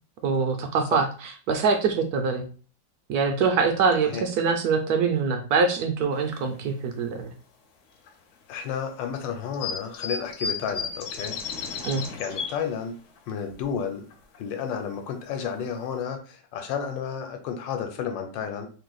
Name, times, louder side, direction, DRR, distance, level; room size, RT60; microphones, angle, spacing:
voice 1, 0.2-2.4 3.1-7.3 11.8-12.0, right 5 dB, 75° right, 5 dB, 0.9 m, -24 dB
sound 1, 6.1-6.4 7.0-7.1 8.1-8.2 9.5-12.7 13.2-13.3 13.5-13.6 14.1-14.4 15.0-15.1 15.4-15.6 16.0-16.1, left 5 dB, 65° left, 0.7 m, -33 dB
voice 2, 8.5-11.4 12.2-13.0 13.3-14.1 14.4-18.7, left 7 dB, 85° left, 6 dB, 1.4 m, -31 dB
3.2 x 2.6 x 3.9 m, 0.40 s
omnidirectional pair, 2.0 m